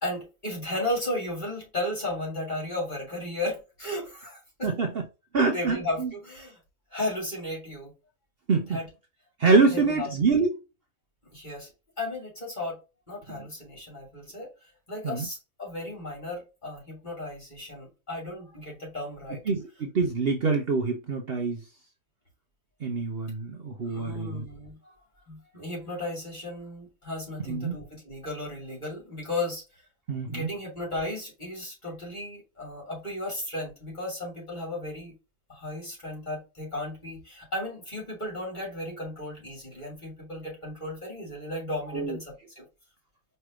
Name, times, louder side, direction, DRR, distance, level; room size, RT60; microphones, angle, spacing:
voice 1, 0.0-4.7 5.5-6.6 6.9-7.9 8.5-8.9 9.6-10.1 11.3-11.7 12.0-12.8 13.1-14.5 14.9-19.4 23.8-24.9 25.3-29.6 30.3-35.1 35.5-42.6, left 1 dB, 35° left, 3.2 m, -35 dB
voice 2, 5.3-6.1 8.5-8.8 9.4-10.5 15.0-15.3 19.5-21.6 22.8-24.4 27.5-27.7 30.1-30.5 41.9-42.2, right 4 dB, 50° right, 0.9 m, -25 dB
4.8 x 3.3 x 3.0 m
omnidirectional pair, 1.4 m